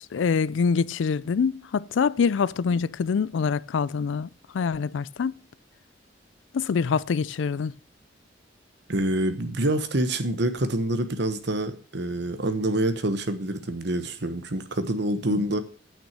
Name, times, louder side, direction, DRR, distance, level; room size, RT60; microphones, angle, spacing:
voice 1, 0.1-4.3 4.5-5.4 6.5-7.7 15.3-15.4, left 5 dB, 75° left, 0.4 m, -25 dB
voice 2, 8.9-15.6, right 1 dB, 65° right, 1.2 m, -26 dB
8.8 x 6.2 x 6.8 m
head